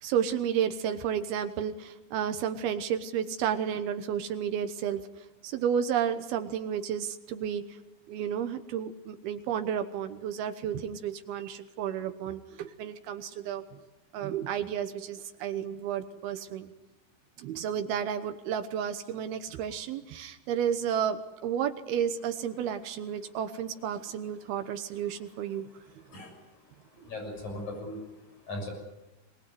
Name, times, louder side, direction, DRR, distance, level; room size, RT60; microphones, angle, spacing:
voice 1, 0.0-5.0 5.4-7.8 8.1-13.6 14.1-16.7 17.4-25.6, right 8 dB, 75° right, 8 dB, 2.4 m, -32 dB
voice 2, 26.1-26.4 26.8-28.0 28.4-28.7, left 1 dB, 35° left, 2 dB, 8.1 m, -38 dB
24.0 x 19.5 x 9.5 m, 1.0 s
omnidirectional pair, 5.7 m